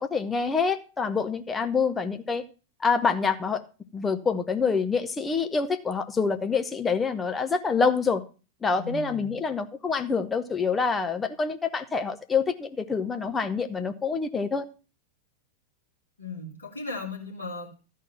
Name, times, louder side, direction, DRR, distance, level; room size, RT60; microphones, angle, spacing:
voice 1, 0.0-2.4 2.8-3.6 3.9-8.2 8.6-14.7, left 5 dB, 15° left, 0.9 m, -26 dB
voice 2, 8.7-9.4 16.2-17.7, left 2 dB, 75° left, 2.6 m, -37 dB
13.0 x 4.7 x 5.7 m
figure-of-eight pair, 90°, 0 cm